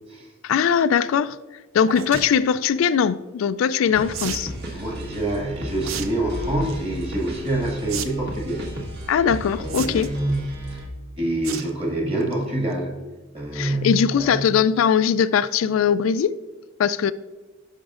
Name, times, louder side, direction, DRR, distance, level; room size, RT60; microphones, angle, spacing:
voice 1, 0.4-1.4 1.7-4.5 9.1-10.1 13.5-16.4 16.8-17.1, left 7 dB, 75° left, 14 dB, 0.3 m, -20 dB
sound 1, 1.9-2.3 4.1-4.5 5.8-6.1 6.4-6.8 7.9-8.1 8.4-8.5 9.7-10.2 11.4-11.7 12.1-12.3 12.7-12.8 13.0-13.1, right 7 dB, 85° right, 0.6 m, -31 dB
sound 2, 3.9-10.9, equal, 50° right, 1.5 m, -34 dB
voice 2, 4.7-8.8 9.6-10.8 11.2-12.9 13.3-14.5, right 1 dB, 30° right, 0 dB, 1.8 m, -26 dB
11.5 x 5.2 x 2.5 m, 1.2 s
head